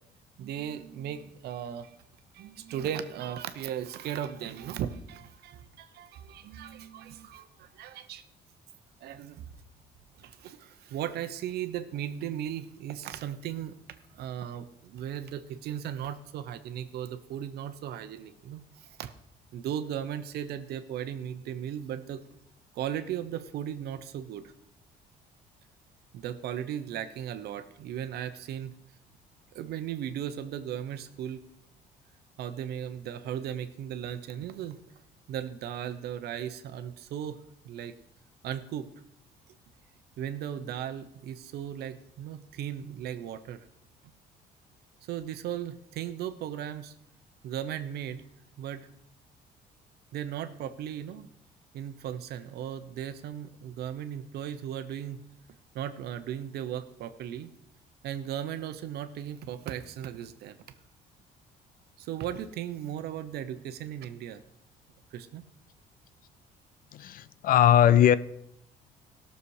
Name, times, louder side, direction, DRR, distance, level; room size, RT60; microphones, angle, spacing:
voice 1, 0.4-2.0 2.3-8.2 9.0-9.4 10.1-13.8 14.1-19.1 19.5-22.2 22.7-24.5 26.1-28.8 29.5-31.4 32.4-34.8 35.3-37.4 37.6-37.9 38.4-38.9 40.2-43.7 45.0-46.9 47.4-48.2 48.6-48.9 50.1-51.3 51.7-55.3 55.7-57.5 58.0-60.6 62.0-64.4 65.1-65.4, right 10 dB, 70° right, 11 dB, 0.9 m, -37 dB
voice 2, 66.9-68.2, left 10 dB, 55° left, 17 dB, 0.5 m, -20 dB
17.0 x 6.9 x 4.8 m, 0.77 s
cardioid pair, 110°, 17 cm